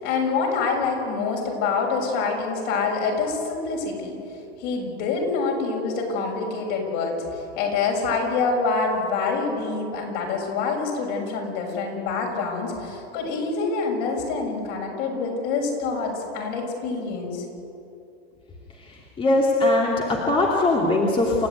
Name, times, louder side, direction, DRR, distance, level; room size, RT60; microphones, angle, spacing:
voice 1, 0.0-4.1 4.6-17.4, left 4 dB, 50° left, 1 dB, 6.7 m, -26 dB
voice 2, 18.7-21.5, left 2 dB, 15° left, -2 dB, 2.5 m, -21 dB
28.5 x 14.0 x 9.4 m, 2.7 s
supercardioid pair, 155°, 32 cm